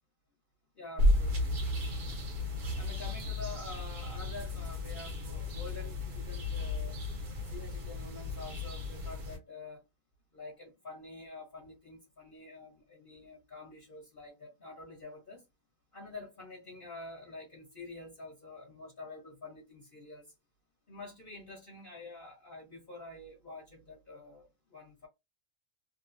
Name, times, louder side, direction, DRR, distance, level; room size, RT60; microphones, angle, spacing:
voice 1, 0.7-1.6 2.8-7.0 7.5-9.8 10.3-15.4 15.9-20.3 20.9-25.1, left 3 dB, 40° left, 1.1 m, -47 dB
sound 1, 1.0-9.4, left 1 dB, 75° right, 1.5 m, -33 dB
3.1 x 2.2 x 2.6 m
omnidirectional pair, 1.6 m